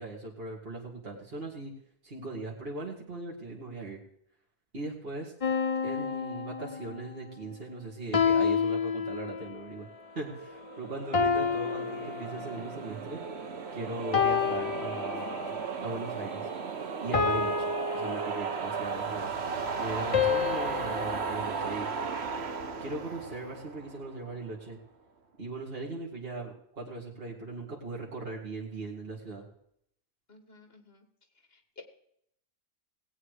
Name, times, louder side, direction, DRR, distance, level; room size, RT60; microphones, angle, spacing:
voice 1, 0.0-1.7 2.0-4.0 4.7-5.3 5.8-9.9 10.1-13.2 13.7-16.5 17.0-19.3 19.8-21.9 22.8-24.8 25.4-29.4, right 2 dB, 65° right, -3 dB, 2.6 m, -39 dB
sound 1, 5.4-7.1 8.1-9.6 11.1-12.8 14.1-15.6 17.1-18.9 20.1-21.2, left 6 dB, 40° left, 0.7 m, -29 dB
sound 2, 10.2-24.5, right 5 dB, 80° right, 1.3 m, -36 dB
voice 2, 30.3-31.1 31.5-31.8, left 3 dB, 65° left, 7 dB, 2.2 m, -53 dB
19.0 x 8.6 x 4.9 m, 0.72 s
omnidirectional pair, 1.1 m